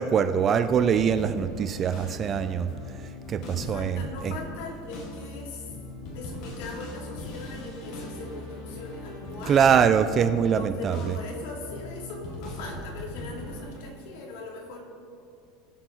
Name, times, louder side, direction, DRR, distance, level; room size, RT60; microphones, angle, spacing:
voice 1, 0.0-2.7 3.3-4.3 9.5-11.1, right 7 dB, 25° right, 12 dB, 0.4 m, -23 dB
sound 1, 0.6-13.8, left 1 dB, 45° left, 2.6 m, -40 dB
voice 2, 3.4-5.7 6.1-9.8 10.5-14.8, left 3 dB, 65° left, -1 dB, 2.7 m, -40 dB
19.5 x 7.5 x 3.9 m, 2.5 s
supercardioid pair, 170°, 0 cm